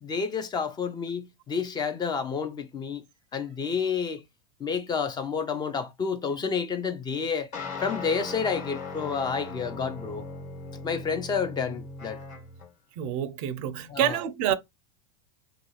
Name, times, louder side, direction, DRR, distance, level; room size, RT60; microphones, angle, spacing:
voice 1, 0.0-3.0 3.3-4.2 4.6-7.5 7.8-10.3 10.8-12.2 13.9-14.2, left 6 dB, 20° left, 0.4 m, -30 dB
sound 1, 7.5-12.7, left 3 dB, 40° left, 1.2 m, -38 dB
voice 2, 13.0-14.5, right 10 dB, 55° right, 0.4 m, -27 dB
2.5 x 2.3 x 2.9 m
hypercardioid pair, 105°, 19 cm